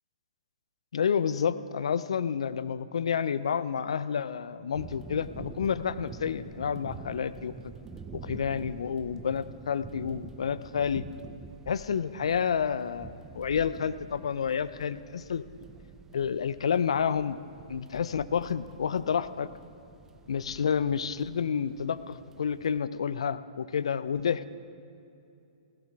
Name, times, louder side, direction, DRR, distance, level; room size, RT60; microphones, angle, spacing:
voice 1, 0.9-7.5 8.2-11.0 11.7-15.5 16.1-17.4 17.7-19.5 20.3-24.5, left 7 dB, 65° left, 15 dB, 0.5 m, -29 dB
sound 1, 4.7-22.8, right 4 dB, 15° right, 0.6 m, -47 dB
20.5 x 16.0 x 2.4 m, 2.7 s
figure-of-eight pair, 115°, 3 cm